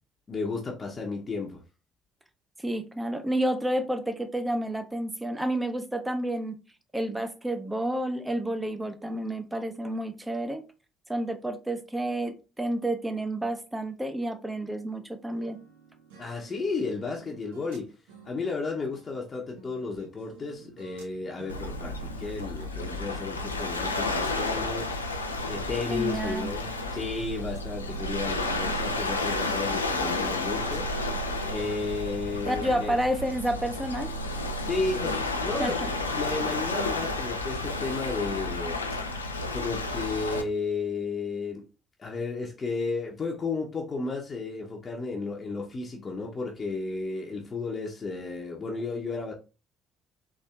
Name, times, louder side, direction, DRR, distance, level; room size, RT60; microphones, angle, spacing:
voice 1, 0.3-1.6 16.2-17.9 18.2-25.1 25.5-30.9 31.5-33.0 34.6-38.8 39.5-41.7 42.0-49.3, left 4 dB, 35° left, 0.8 m, -33 dB
voice 2, 2.6-6.6 6.9-10.6 11.1-15.6 25.9-26.5 32.5-34.1 35.6-35.9, right 1 dB, 10° right, 0.8 m, -30 dB
sound 1, 15.3-27.6 27.9-32.0, right 6 dB, 75° right, 0.6 m, -52 dB
Waves surf, 21.5-40.4, left 2 dB, 90° left, 0.3 m, -31 dB
4.2 x 2.9 x 2.4 m
figure-of-eight pair, 50°, 0 cm